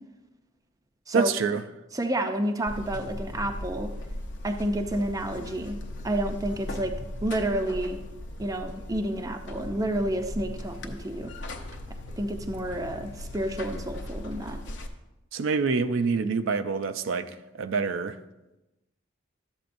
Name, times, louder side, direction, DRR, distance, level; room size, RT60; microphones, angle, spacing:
voice 1, 1.1-1.6 15.3-18.2, right 5 dB, 75° right, 0.4 m, -26 dB
voice 2, 1.9-3.9 4.4-5.8 6.0-8.0 8.4-11.3 12.2-14.6, right 1 dB, 15° right, 0.5 m, -30 dB
Buzz, 2.7-14.9, left 1 dB, 60° left, 0.7 m, -38 dB
12.0 x 7.9 x 2.6 m
head